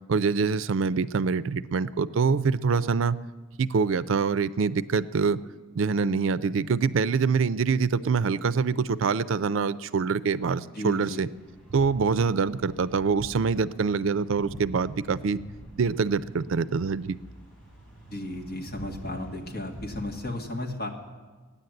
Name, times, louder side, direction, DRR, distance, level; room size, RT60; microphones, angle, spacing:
voice 1, 0.1-3.2 3.6-5.4 5.8-11.3 11.7-15.4 15.8-17.2, right 5 dB, 75° right, 16 dB, 0.4 m, -25 dB
voice 2, 10.7-11.2 18.1-20.9, left 1 dB, 50° left, 1 dB, 1.8 m, -34 dB
sound 1, 11.4-20.3, right 1 dB, 5° left, 3.8 m, -45 dB
16.0 x 9.9 x 7.8 m, 1.4 s
head